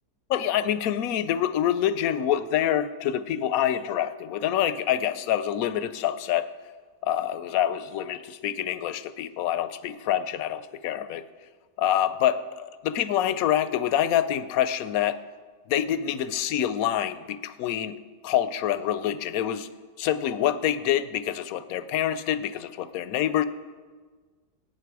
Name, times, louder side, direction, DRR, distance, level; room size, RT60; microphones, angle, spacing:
voice 1, 0.3-6.5 7.0-11.2 11.8-15.2 15.7-18.0 18.2-19.7 20.0-23.4, left 10 dB, 70° left, 14 dB, 1.0 m, -26 dB
16.5 x 9.0 x 4.7 m, 1.5 s
omnidirectional pair, 1.7 m